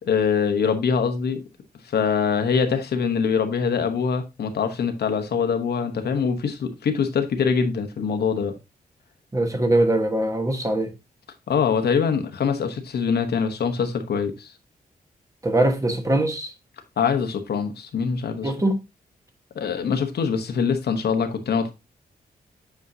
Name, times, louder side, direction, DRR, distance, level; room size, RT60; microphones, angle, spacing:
voice 1, 0.0-1.4 1.8-8.5 11.5-14.5 17.0-18.5 19.5-21.7, left 6 dB, 85° left, 1.1 m, -23 dB
voice 2, 9.3-10.9 15.4-16.5 18.4-18.8, right 1 dB, 20° right, 1.3 m, -22 dB
8.3 x 4.5 x 2.7 m
wide cardioid pair, 100°, 17 cm